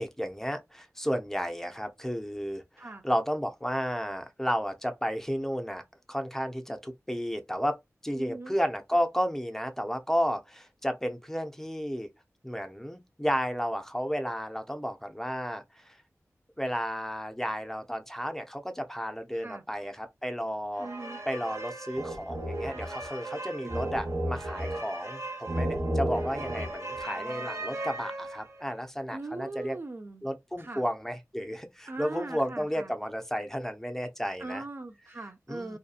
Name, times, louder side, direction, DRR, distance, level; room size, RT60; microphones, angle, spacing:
voice 1, 0.0-5.8 6.1-7.8 8.0-12.1 12.4-16.0 16.6-20.9 21.3-29.8 30.2-34.6 35.5-35.8, equal, 5° left, 0.6 m, -32 dB
voice 2, 8.1-8.6 19.4-19.6 20.8-21.2 23.6-24.0 29.1-30.3 30.6-30.8 31.9-32.9 34.4-35.8, right 2 dB, 40° right, 0.4 m, -40 dB
sound 1, 20.8-28.6, right 1 dB, 55° right, 0.8 m, -34 dB
2.7 x 2.2 x 2.3 m
cardioid pair, 50°, 6 cm